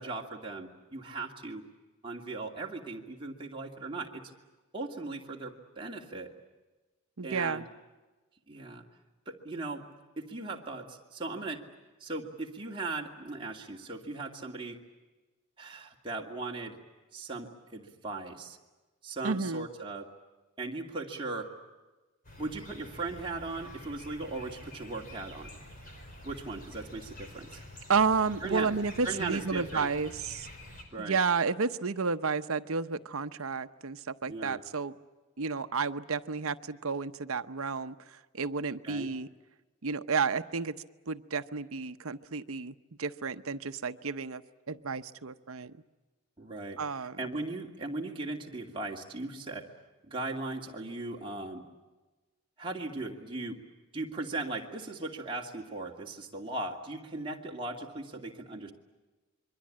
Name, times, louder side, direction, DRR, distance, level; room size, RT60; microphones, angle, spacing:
voice 1, 0.0-1.6 2.0-4.2 4.7-6.3 7.2-7.7 8.5-8.8 9.3-9.9 10.2-11.6 12.0-14.8 15.6-16.8 17.1-18.6 19.0-20.1 20.6-21.5 22.4-25.5 26.2-27.6 28.4-28.7 29.0-29.9 30.9-31.2 34.3-34.6 38.8-39.1 46.4-46.8 47.2-49.7 50.0-51.6 52.6-53.6 53.9-58.7, right 3 dB, 25° right, -1 dB, 2.5 m, -38 dB
voice 2, 7.2-7.7 19.2-19.7 27.9-30.5 31.0-34.9 35.4-37.9 38.3-39.3 39.8-40.8 41.1-44.4 44.7-45.7 46.8-47.2, right 5 dB, 75° right, 10 dB, 0.9 m, -31 dB
sound 1, 22.2-30.8, left 1 dB, 40° left, 5.0 m, -48 dB
27.0 x 23.0 x 8.7 m, 1.2 s
head